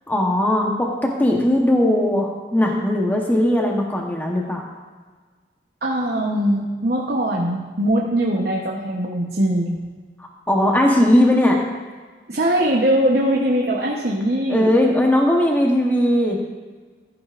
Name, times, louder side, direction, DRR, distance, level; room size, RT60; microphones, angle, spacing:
voice 1, 0.1-4.6 10.5-11.6 14.5-16.4, left 1 dB, 10° left, 0 dB, 1.0 m, -18 dB
voice 2, 5.8-9.9 12.3-14.7, right 1 dB, 60° right, -2 dB, 1.0 m, -21 dB
14.0 x 9.9 x 2.5 m, 1.5 s
head